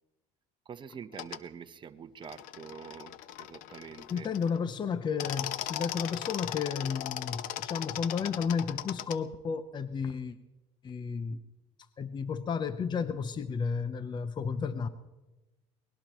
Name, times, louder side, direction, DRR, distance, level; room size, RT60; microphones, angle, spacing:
voice 1, 0.7-4.3, right 7 dB, 35° right, 10 dB, 0.9 m, -46 dB
sound 1, 1.1-1.4 2.2-4.6 5.0-9.2, left 12 dB, 65° left, 0.8 m, -38 dB
voice 2, 4.1-10.4 10.8-11.4 12.0-14.9, left 6 dB, 30° left, 13 dB, 0.7 m, -32 dB
23.5 x 19.5 x 3.1 m, 1.1 s
supercardioid pair, 100°, 15 cm